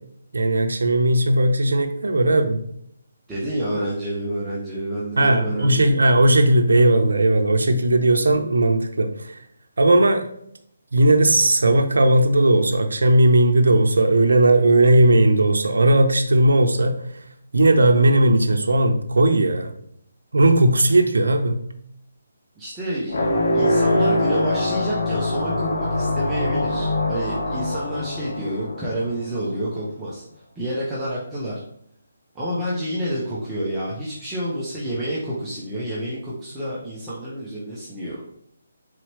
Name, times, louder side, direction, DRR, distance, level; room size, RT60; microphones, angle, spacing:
voice 1, 0.3-2.6 5.2-9.4 9.8-10.2 10.9-17.0 17.5-19.7 20.3-21.6, right 1 dB, 85° right, 5 dB, 0.5 m, -17 dB
voice 2, 3.3-5.9 22.6-30.2 30.6-31.6 32.3-38.2, right 1 dB, 10° right, -8 dB, 0.8 m, -28 dB
sound 1, 23.1-29.2, left 1 dB, 70° left, 1.2 m, -23 dB
4.0 x 3.1 x 3.0 m, 0.70 s
hypercardioid pair, 160°, 0 cm